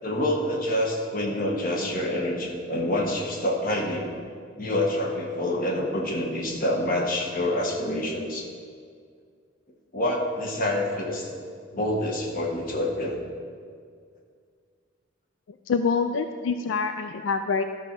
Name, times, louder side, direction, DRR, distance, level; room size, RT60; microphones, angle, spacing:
voice 1, 0.0-4.1 4.6-8.4 9.9-11.3 11.7-13.2, left 1 dB, 45° left, 0 dB, 1.3 m, -27 dB
voice 2, 15.7-17.6, left 5 dB, 85° left, 7 dB, 0.4 m, -25 dB
12.5 x 4.3 x 6.0 m, 2.1 s
head